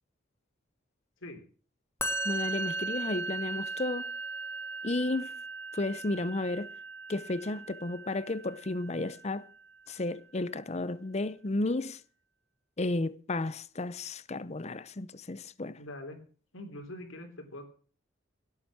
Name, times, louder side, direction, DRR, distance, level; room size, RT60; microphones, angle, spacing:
Musical instrument, 2.0-9.3, right 3 dB, 15° left, 1.5 m, -37 dB
voice 1, 2.2-4.1 4.8-5.3 5.7-6.7 7.1-9.5 9.9-12.0 12.8-15.8, left 2 dB, 35° left, 0.7 m, -33 dB
voice 2, 15.8-16.2 16.5-17.7, left 1 dB, 80° left, 3.3 m, -43 dB
17.0 x 8.1 x 6.1 m
head